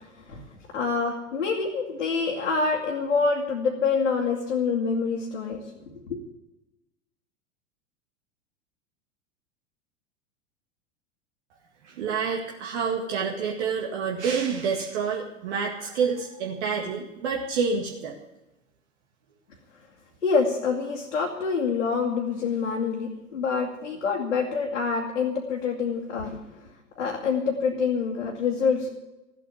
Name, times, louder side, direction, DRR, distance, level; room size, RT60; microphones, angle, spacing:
voice 1, 0.7-5.6 5.9-6.2 20.2-26.4 27.0-28.9, left 5 dB, 80° left, -3 dB, 2.4 m, -26 dB
voice 2, 11.8-18.2, right 5 dB, 60° right, 0 dB, 2.0 m, -28 dB
14.5 x 8.6 x 9.7 m, 1.0 s
figure-of-eight pair, 90°, 38 cm